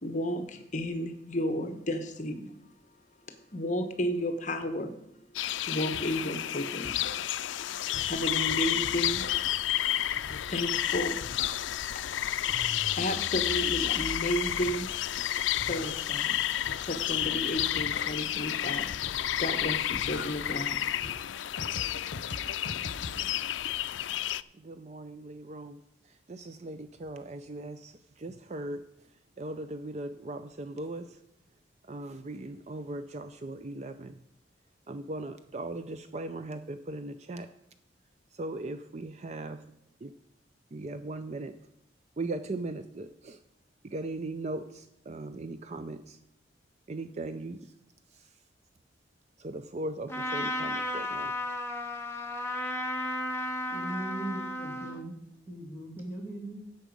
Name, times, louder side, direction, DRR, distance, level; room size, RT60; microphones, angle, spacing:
voice 1, 0.0-2.5 3.3-5.1 5.7-7.2 7.5-7.8 8.0-9.9 10.3-11.7 11.9-12.3 12.9-16.4 16.7-19.0 19.3-21.2, equal, 40° left, 8 dB, 1.0 m, -33 dB
sound 1, 5.3-24.4, left 12 dB, 90° left, 0.4 m, -31 dB
sound 2, 5.9-6.2 6.7-7.7 7.9-9.7 10.1-10.8 11.0-12.0 12.3-15.0 15.4-18.4 18.9-19.5 19.8-23.4, left 2 dB, 75° left, 0.8 m, -44 dB
voice 2, 24.6-25.8 26.0-28.8 29.4-31.2 31.9-34.2 34.9-37.5 38.3-39.6 40.0-40.1 40.7-41.6 42.2-43.4 43.8-46.2 46.9-47.7 48.1-48.3 49.4-51.3, right 2 dB, 35° right, 10 dB, 0.5 m, -39 dB
Trumpet, 50.1-55.0, left 1 dB, 15° left, 1.2 m, -34 dB
voice 3, 53.7-55.2 55.5-56.7, right 1 dB, 10° right, -1 dB, 2.5 m, -39 dB
11.0 x 8.0 x 5.2 m, 0.81 s
head